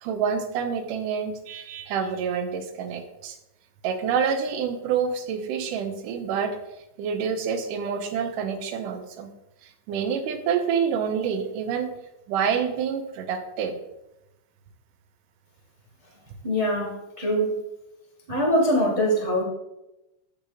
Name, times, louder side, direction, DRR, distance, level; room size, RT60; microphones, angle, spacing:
voice 1, 0.0-3.4 3.8-6.6 7.0-9.3 9.6-11.9 12.3-13.8, right 7 dB, 85° right, 7 dB, 2.5 m, -27 dB
voice 2, 16.4-17.6 18.3-19.4, equal, 25° right, -1 dB, 0.7 m, -23 dB
7.9 x 7.2 x 4.0 m, 0.91 s
omnidirectional pair, 3.6 m